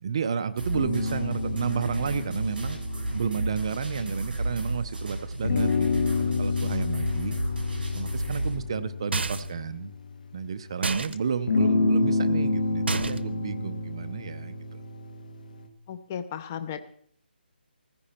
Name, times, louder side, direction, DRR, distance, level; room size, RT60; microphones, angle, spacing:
voice 1, 0.0-2.8 3.1-7.4 7.9-9.9 10.3-14.6, right 6 dB, 30° right, 11 dB, 0.6 m, -31 dB
sound 1, 0.6-8.6, right 1 dB, 60° right, 7.6 m, -33 dB
sound 2, 0.7-4.7 5.4-10.5 11.5-15.7, left 3 dB, 50° left, 1.7 m, -29 dB
sound 3, 9.1-9.6 10.8-11.1 12.9-13.4, right 3 dB, 85° right, 0.8 m, -29 dB
voice 2, 15.9-16.8, left 8 dB, 15° left, 10 dB, 0.4 m, -35 dB
15.0 x 14.0 x 4.3 m, 0.63 s
hypercardioid pair, 175°, 6 cm